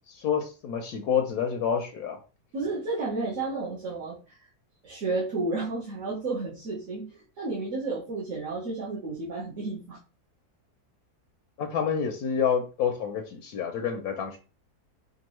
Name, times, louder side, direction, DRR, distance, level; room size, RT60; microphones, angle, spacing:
voice 1, 0.1-2.2 11.6-14.4, left 7 dB, 75° left, 5 dB, 1.1 m, -28 dB
voice 2, 2.5-4.4 4.8-10.0, right 3 dB, 55° right, -7 dB, 1.5 m, -32 dB
4.4 x 2.6 x 3.0 m, 0.33 s
omnidirectional pair, 1.7 m